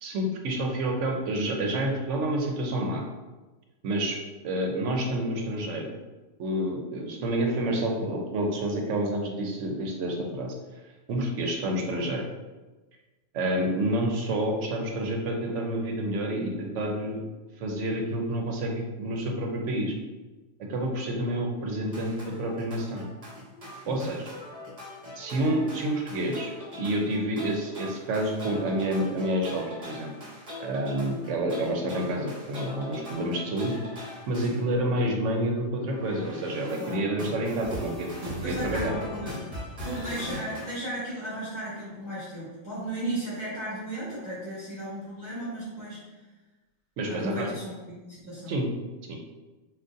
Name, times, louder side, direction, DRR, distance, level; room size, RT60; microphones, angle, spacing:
voice 1, 0.0-3.0 3.8-4.2 4.4-6.0 6.4-10.5 11.1-12.2 13.3-17.2 17.6-19.9 20.7-23.1 23.9-24.3 25.1-26.5 26.8-30.1 30.6-33.7 34.3-38.9 47.0-47.5 48.5-48.7 49.1-49.2, right 1 dB, 80° right, 1 dB, 1.0 m, -29 dB
sound 1, 21.9-34.6 35.6-40.8, left 1 dB, 30° right, 1.1 m, -40 dB
voice 2, 23.8-24.1 34.4-34.6 36.7-37.0 38.4-39.6 39.8-46.2 47.1-48.5, right 1 dB, 15° right, -12 dB, 1.2 m, -35 dB
3.6 x 2.5 x 2.6 m, 1.2 s
omnidirectional pair, 1.2 m